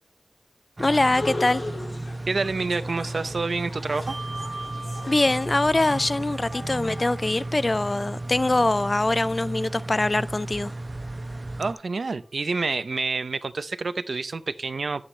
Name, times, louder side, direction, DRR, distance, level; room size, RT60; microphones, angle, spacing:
voice 1, 0.8-1.6 5.1-10.7, left 2 dB, 40° left, 0.4 m, -23 dB
sound 1, 0.8-11.7, right 2 dB, 35° right, 0.7 m, -34 dB
sound 2, 0.9-7.8, left 2 dB, 70° left, 1.9 m, -39 dB
voice 2, 2.3-4.2 11.6-15.0, right 4 dB, 75° right, 0.6 m, -28 dB
Bell, 4.1-10.9, right 2 dB, 55° right, 1.3 m, -43 dB
9.7 x 8.8 x 3.2 m
wide cardioid pair, 70°, 0 cm